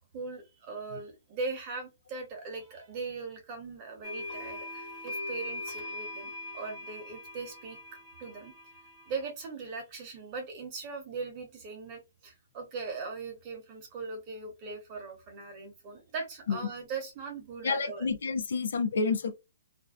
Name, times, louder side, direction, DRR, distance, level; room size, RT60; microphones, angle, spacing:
voice 1, 0.1-7.8 8.2-8.5 9.0-18.1, right 4 dB, 25° right, 0.9 m, -40 dB
sound 1, 4.0-9.3, left 2 dB, 10° left, 0.8 m, -41 dB
voice 2, 17.6-19.3, left 4 dB, 70° left, 0.5 m, -29 dB
2.5 x 2.2 x 2.3 m
hypercardioid pair, 165°, 0 cm